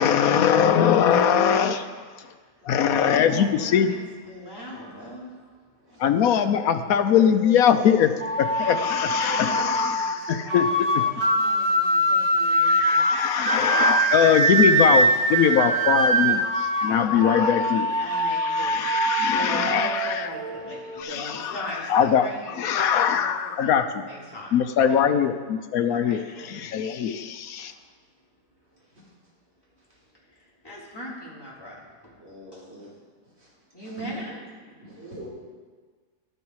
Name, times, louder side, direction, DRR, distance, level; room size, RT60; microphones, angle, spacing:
voice 1, 0.0-1.9 2.7-4.0 6.0-10.7 10.9-11.0 12.6-20.3 21.0-22.3 22.6-24.0 24.5-26.2 26.5-27.7, left 8 dB, 65° left, 9 dB, 1.0 m, -22 dB
voice 2, 3.0-4.0 4.2-5.3 5.9-6.0 9.2-10.2 10.4-13.0 17.4-17.5 18.0-18.8 19.3-22.7 23.0-24.5 24.9-25.0 25.9-26.8 30.6-32.1 32.5-32.7 33.7-34.4, equal, 10° left, -7 dB, 3.3 m, -40 dB
voice 3, 5.8-6.4 6.9-7.0 8.8-8.9 28.8-29.1 29.9-30.0 32.2-33.0 33.4-33.5 33.8-34.3 34.6-35.3, left 1 dB, 35° right, -7 dB, 4.1 m, -44 dB
sound 1, 8.2-21.0, right 1 dB, 55° right, 1.4 m, -23 dB
12.5 x 11.5 x 4.7 m, 1.5 s
omnidirectional pair, 1.9 m